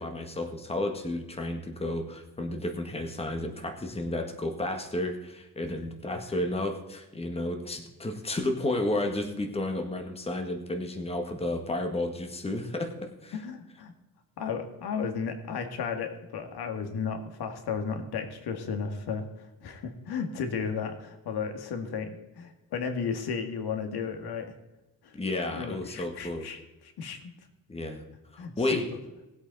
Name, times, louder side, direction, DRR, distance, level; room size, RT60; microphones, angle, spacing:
voice 1, 0.0-13.3 25.1-26.5 27.7-28.0 28.3-28.9, left 1 dB, 15° left, 4 dB, 1.5 m, -32 dB
voice 2, 13.3-13.9 14.4-22.1 22.4-24.5 25.0-25.2 25.5-27.3 28.4-28.8, left 6 dB, 75° left, 6 dB, 1.9 m, -34 dB
19.5 x 8.2 x 4.0 m, 1.0 s
cardioid pair, 125°, 38 cm